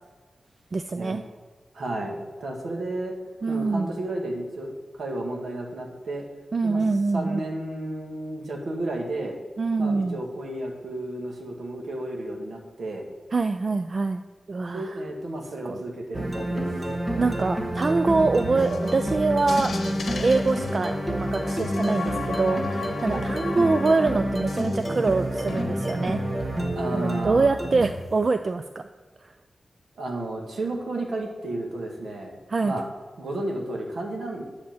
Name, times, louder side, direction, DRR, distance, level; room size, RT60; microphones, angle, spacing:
voice 1, 0.7-1.2 3.4-3.9 6.5-7.5 9.6-10.2 13.3-14.2 14.5-15.0 15.7-15.8 17.2-19.8 20.2-26.2 26.9-28.8 29.2-29.3 32.5-32.7, right 3 dB, 40° right, 9 dB, 0.3 m, -24 dB
voice 2, 1.7-3.1 3.5-6.3 6.6-6.8 7.1-9.4 9.8-13.1 14.7-16.9 23.1-23.3 26.7-27.6 30.0-32.4 32.6-32.9 33.2-34.4, right 1 dB, 80° right, 0 dB, 1.7 m, -32 dB
sound 1, 16.1-28.1, equal, 25° right, 1.2 m, -28 dB
sound 2, 18.6-25.1 25.4-25.6, left 4 dB, 75° left, 0.9 m, -36 dB
10.5 x 4.3 x 7.1 m, 1.4 s
wide cardioid pair, 140°, 0 cm